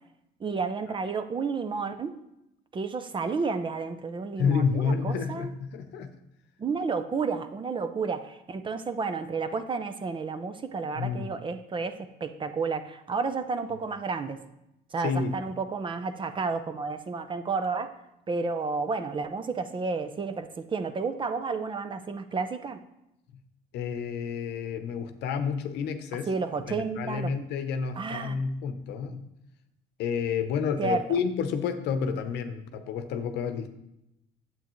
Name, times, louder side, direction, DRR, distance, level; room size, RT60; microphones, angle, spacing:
voice 1, 0.4-2.2 2.7-5.5 6.6-14.4 14.9-17.9 18.3-22.8 26.3-27.4 27.9-28.4 30.8-31.2, right 4 dB, 30° right, 10 dB, 0.6 m, -31 dB
voice 2, 4.4-6.1 11.0-11.3 15.0-15.3 23.7-26.3 26.7-29.2 30.0-33.7, left 6 dB, 80° left, 8 dB, 0.8 m, -29 dB
9.4 x 7.9 x 3.1 m, 0.86 s
cardioid pair, 110°, 17 cm